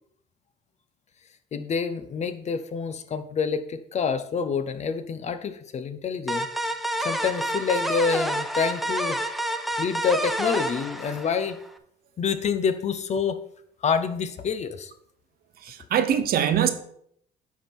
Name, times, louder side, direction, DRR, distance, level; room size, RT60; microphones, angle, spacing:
voice 1, 1.5-6.5 7.0-9.2 9.8-11.6 12.2-13.4 13.8-14.9, left 6 dB, 40° left, 0.8 m, -27 dB
sound 1, 6.3-11.7, right 1 dB, ahead, 0.6 m, -29 dB
voice 2, 15.6-16.7, right 9 dB, 60° right, 0.9 m, -23 dB
9.4 x 3.7 x 5.9 m
cardioid pair, 110°, 17 cm